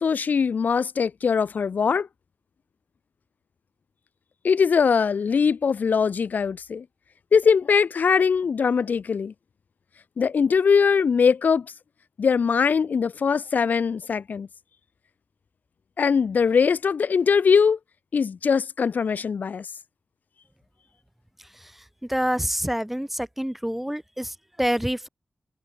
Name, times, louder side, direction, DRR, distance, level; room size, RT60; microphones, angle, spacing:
voice 1, 0.0-2.1 4.4-6.8 7.3-9.3 10.2-11.7 12.2-14.5 16.0-17.8 18.1-19.6, left 6 dB, 85° left, 0.8 m, -21 dB
voice 2, 22.1-25.1, equal, 5° right, 0.3 m, -27 dB
wide cardioid pair, 90°, 3 cm